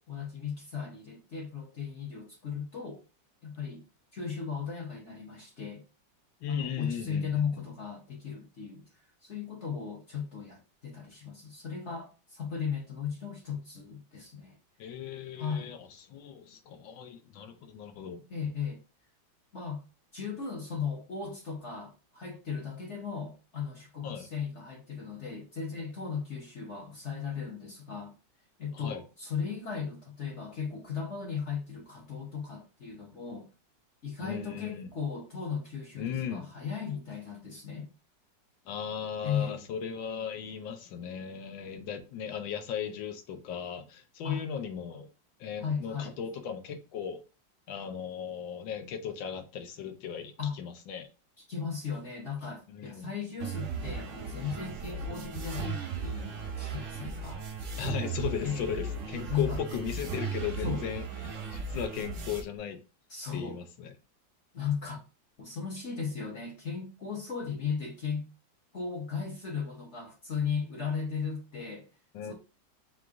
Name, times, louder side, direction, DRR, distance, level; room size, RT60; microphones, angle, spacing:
voice 1, 0.0-3.0 3.4-3.9 4.1-5.8 6.5-8.8 9.2-14.5 15.4-15.7 18.3-18.8 19.5-19.8 20.1-28.1 28.6-33.5 34.0-37.9 39.2-39.6 44.2-44.4 45.6-46.1 50.4-50.5 51.5-57.4 58.4-58.6 59.3-59.6 60.6-60.8 63.1-63.6 64.5-65.0 65.4-68.3 68.7-71.9 72.2-72.3, left 6 dB, 45° left, 1.1 m, -36 dB
voice 2, 6.4-7.6 14.8-18.3 24.0-24.3 28.7-29.0 34.2-34.9 36.0-36.5 38.6-45.1 45.4-47.2 47.7-51.1 52.7-53.1 57.8-62.8 63.3-63.9 72.1-72.3, left 8 dB, 80° left, 1.5 m, -37 dB
sound 1, 53.4-62.4, right 4 dB, 55° right, 0.9 m, -36 dB
4.8 x 2.5 x 3.6 m
omnidirectional pair, 2.1 m